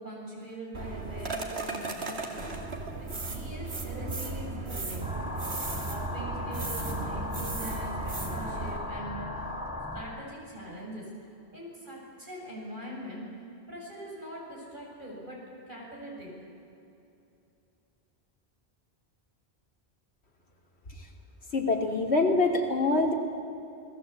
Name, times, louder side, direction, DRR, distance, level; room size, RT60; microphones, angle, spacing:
voice 1, 0.0-2.5 3.0-5.1 5.8-9.3 9.9-11.1 11.5-13.3 13.7-15.4 15.7-16.3, right 1 dB, 50° right, -3 dB, 7.5 m, -42 dB
sound 1, 0.7-8.8, right 3 dB, 80° right, 2.7 m, -36 dB
sound 2, 5.0-10.0, left 2 dB, 5° right, 3.5 m, -37 dB
voice 2, 21.5-23.1, left 3 dB, 85° left, 2 dB, 2.9 m, -25 dB
29.0 x 19.0 x 8.4 m, 2.8 s
omnidirectional pair, 1.1 m